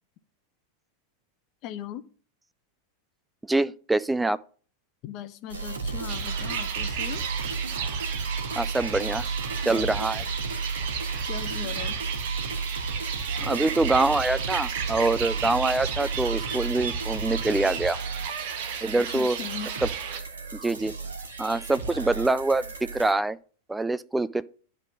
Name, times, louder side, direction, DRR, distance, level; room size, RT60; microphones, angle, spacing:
voice 1, 1.6-2.0 5.0-7.2 9.7-10.0 11.2-12.0 18.9-19.7, left 10 dB, 40° left, 0.6 m, -38 dB
voice 2, 3.5-4.4 8.5-9.3 9.6-10.2 13.4-18.0 18.8-19.4 20.5-20.9 21.4-22.6 22.9-23.4 23.7-24.4, right 2 dB, 5° right, 0.4 m, -25 dB
sound 1, 5.5-23.1, right 4 dB, 70° right, 1.5 m, -33 dB
sound 2, 6.1-20.2, right 8 dB, 50° right, 1.0 m, -34 dB
10.5 x 3.6 x 5.9 m
figure-of-eight pair, 90°, 0 cm